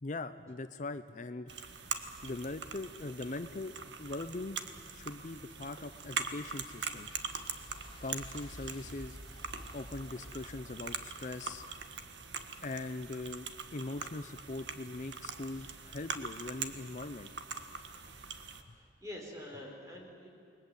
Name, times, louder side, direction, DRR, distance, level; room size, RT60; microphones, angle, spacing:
voice 1, 0.0-1.5 2.2-4.6 4.9-7.1 8.0-9.2 9.7-11.6 12.6-17.3 18.7-18.8, left 2 dB, 45° left, 11 dB, 0.6 m, -41 dB
sound 1, 1.5-18.6, right 5 dB, 80° right, 1.6 m, -43 dB
sound 2, 4.8-12.1, left 1 dB, 25° left, 2.1 m, -53 dB
voice 2, 18.5-20.3, left 1 dB, 20° right, 0 dB, 5.5 m, -46 dB
29.0 x 21.5 x 8.1 m, 2.6 s
head